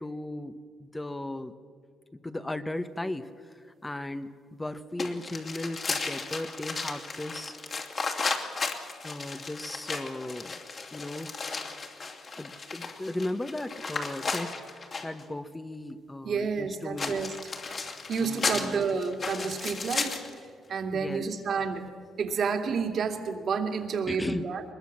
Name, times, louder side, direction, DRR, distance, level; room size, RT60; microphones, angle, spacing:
voice 1, 0.0-1.5 2.1-7.5 9.0-10.6 10.9-11.3 12.4-17.2 18.2-18.9 19.4-19.6 20.9-21.4 24.1-24.6, left 1 dB, 15° left, 10 dB, 1.0 m, -36 dB
sound 1, 5.0-15.2 17.0-20.4, left 4 dB, 45° left, 2.8 m, -35 dB
voice 2, 16.2-17.3 18.1-20.2 20.7-21.9 22.2-24.6, right 5 dB, 60° right, 5 dB, 2.5 m, -30 dB
22.5 x 21.5 x 7.4 m, 2.1 s
cardioid pair, 90°, 0 cm